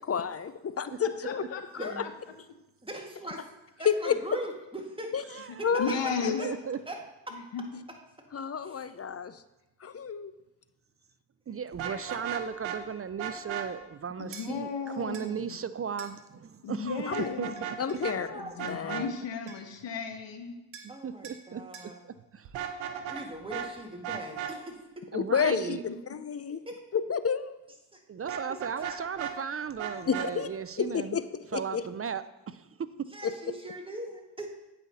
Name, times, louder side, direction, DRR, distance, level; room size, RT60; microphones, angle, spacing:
voice 1, 0.1-1.4 1.8-1.9 3.9-4.2 5.1-5.2 5.6-6.0 6.2-6.6 8.3-9.4 9.8-10.3 17.1-17.2 17.8-19.1 25.1-25.8 26.1-26.6 26.9-27.6 30.1-30.5 30.8-31.2 31.5-31.8 33.2-33.3, left 7 dB, 35° left, 14 dB, 0.5 m, -30 dB
voice 2, 1.2-2.1 5.8-6.4 7.3-7.6 14.2-15.5 16.6-17.5 18.4-20.6, left 5 dB, 70° left, 6 dB, 1.2 m, -35 dB
voice 3, 2.8-3.4 3.8-5.1 5.7-6.1 6.4-6.5 6.9-7.0 7.3-7.4 8.6-8.8 11.8-12.0 18.2-18.6 20.9-22.0 23.1-25.0 26.5-26.7 27.9-28.0 28.3-28.6 28.9-29.0 33.1-34.5, right 1 dB, 10° right, 1 dB, 1.8 m, -40 dB
voice 4, 5.3-5.7 6.3-6.8 11.5-18.0 20.8-22.5 25.1-25.8 28.1-31.2 31.5-33.1, right 7 dB, 35° right, 14 dB, 0.4 m, -36 dB
Vehicle horn car horn honking, 11.7-12.8 13.2-13.7 17.1-17.8 18.0-18.2 18.6-19.0 22.4-23.2 23.5-23.7 24.0-24.5 28.3-29.3 29.8-30.3, right 10 dB, 90° right, 0.8 m, -35 dB
sound 1, 14.3-14.5 15.1-15.3 16.0-16.2 17.2-18.1 19.1-19.2 19.5-19.8 20.7-21.0 21.2-21.4 21.7-21.9, right 6 dB, 70° right, 1.3 m, -48 dB
8.5 x 5.6 x 4.1 m, 0.97 s
supercardioid pair, 55°, 46 cm